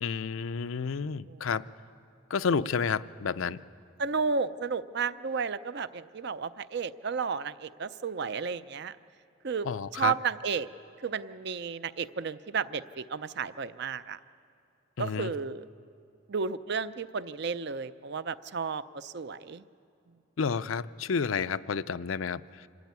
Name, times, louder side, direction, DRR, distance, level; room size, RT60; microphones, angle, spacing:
voice 1, 0.0-1.6 2.3-3.6 9.6-10.1 15.0-15.3 20.4-22.7, left 5 dB, 80° left, 14 dB, 0.5 m, -30 dB
voice 2, 4.0-9.0 9.4-10.7 11.0-14.2 15.0-15.7 16.3-19.6, right 5 dB, 55° right, 14 dB, 0.6 m, -33 dB
26.5 x 13.5 x 9.6 m, 2.6 s
head